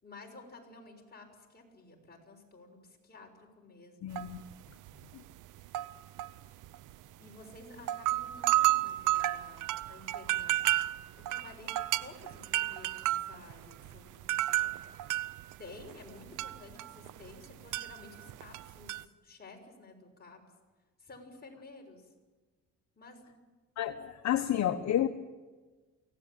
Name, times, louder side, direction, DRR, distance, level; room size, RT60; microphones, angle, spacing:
voice 1, 0.0-4.2 7.2-14.8 15.6-20.4 21.0-22.1 23.0-23.4, left 3 dB, 30° left, 2 dB, 6.3 m, -53 dB
voice 2, 4.0-4.4 23.8-25.1, left 11 dB, 65° left, 8 dB, 1.1 m, -30 dB
sound 1, 4.2-4.5 4.9-5.0 5.6-7.0 7.5-7.6 7.8-17.5 17.7-19.0, right 15 dB, 85° right, 0.8 m, -32 dB
24.0 x 17.0 x 8.8 m, 1.3 s
cardioid pair, 90°, 30 cm